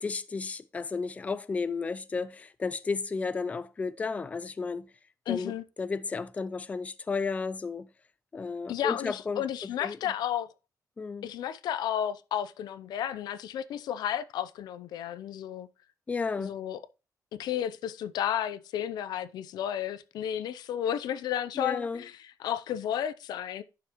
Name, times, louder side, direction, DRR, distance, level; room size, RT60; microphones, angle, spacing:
voice 1, 0.0-4.9 5.3-5.5 5.8-7.9 8.3-10.0 11.0-11.3 16.1-16.5 21.6-22.0, left 4 dB, 20° left, 0.4 m, -33 dB
voice 2, 5.3-5.6 8.7-10.5 11.2-15.7 16.4-16.8 17.4-23.6, left 10 dB, 90° left, 0.6 m, -32 dB
10.5 x 5.8 x 3.0 m
cardioid pair, 150°, 7 cm